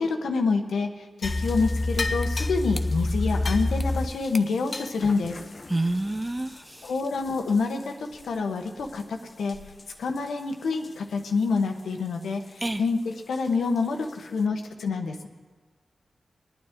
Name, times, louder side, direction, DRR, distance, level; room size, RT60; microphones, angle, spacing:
voice 1, 0.0-5.4 6.8-9.6 10.0-15.3, left 4 dB, 85° left, 4 dB, 1.0 m, -27 dB
sound 1, 1.2-7.8 8.1-8.3 8.8-9.0 9.5-9.8 10.2-10.3 10.8-10.9 13.3-13.4 14.0-14.1, left 2 dB, 50° left, 0.7 m, -29 dB
voice 2, 5.7-6.9 12.6-12.8, right 2 dB, 25° right, 11 dB, 0.6 m, -28 dB
22.5 x 9.2 x 3.6 m, 1.3 s
cardioid pair, 40°, 0 cm